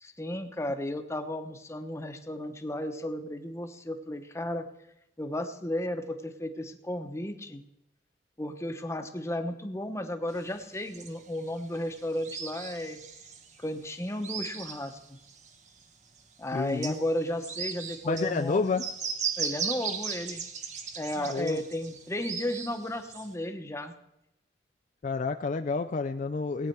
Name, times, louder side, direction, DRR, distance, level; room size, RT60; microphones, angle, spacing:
voice 1, 0.0-4.7 5.2-7.6 8.4-13.0 13.6-15.0 16.4-18.8 19.4-20.4 20.9-23.9, left 1 dB, 15° left, 6 dB, 1.0 m, -34 dB
sound 1, 10.4-15.8 16.2-16.3 16.7-23.3, right 6 dB, 45° right, 1.0 m, -37 dB
voice 2, 16.5-16.9 18.0-18.8 21.2-21.6 25.0-26.7, left 4 dB, 45° left, 7 dB, 0.4 m, -29 dB
18.5 x 9.0 x 4.6 m, 0.86 s
head